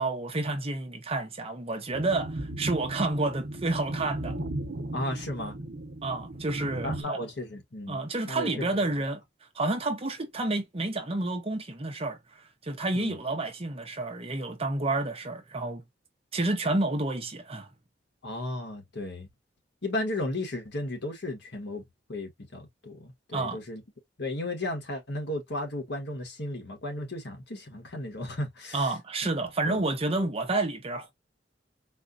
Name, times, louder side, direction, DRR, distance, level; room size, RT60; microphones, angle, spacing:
voice 1, 0.0-4.4 6.0-7.2 7.9-9.2 9.5-12.2 12.6-15.8 16.3-17.7 23.3-23.6 28.7-31.1, right 2 dB, 35° right, 0.8 m, -29 dB
sound 1, 1.9-7.0, right 1 dB, 70° right, 1.0 m, -36 dB
voice 2, 4.9-5.6 6.6-8.8 12.9-13.2 18.2-19.3 19.8-21.8 22.1-23.8 24.2-28.9 29.7-29.8, left 1 dB, 65° left, 1.3 m, -35 dB
4.3 x 2.4 x 2.5 m
head